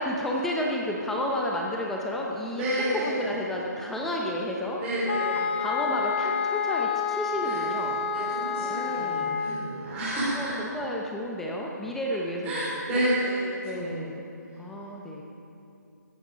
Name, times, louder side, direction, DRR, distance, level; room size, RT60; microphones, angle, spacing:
voice 1, 0.0-4.8 5.3-8.0 8.6-9.3 10.3-12.5 13.0-13.1 13.6-14.2 14.6-15.2, left 1 dB, 5° left, -2 dB, 0.7 m, -31 dB
voice 2, 2.5-3.2 4.8-5.6 7.3-7.7 8.1-10.6 12.4-14.2, right 1 dB, 15° right, -10 dB, 3.3 m, -30 dB
sound 1, 5.1-9.8, left 6 dB, 40° left, 0.9 m, -29 dB
15.0 x 13.5 x 5.1 m, 2.7 s
hypercardioid pair, 170°, 10 cm